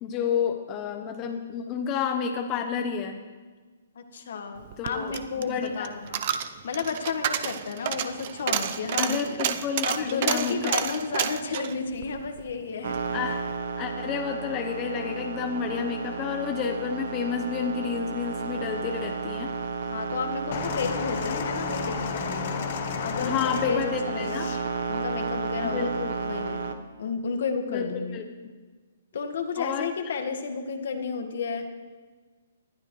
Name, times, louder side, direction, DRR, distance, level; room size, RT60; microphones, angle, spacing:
voice 1, 0.0-3.2 4.8-5.9 9.0-10.7 13.1-13.5 13.8-19.5 23.2-24.5 25.6-26.2 27.7-28.5 29.6-29.9, left 7 dB, 25° left, 4 dB, 0.8 m, -30 dB
voice 2, 4.0-6.2 6.6-9.4 9.8-13.0 19.9-22.4 23.0-24.6 24.9-28.2 29.1-31.7, left 5 dB, 65° left, 6 dB, 1.6 m, -32 dB
Coin (dropping), 4.6-13.1 13.4-13.5, right 10 dB, 45° right, 0.6 m, -31 dB
sound 1, 12.8-26.7, right 5 dB, 60° right, 1.1 m, -33 dB
sound 2, 20.5-24.6 25.5-25.6, left 7 dB, 50° left, 1.0 m, -32 dB
19.5 x 11.5 x 3.2 m, 1.4 s
hypercardioid pair, 155°, 0 cm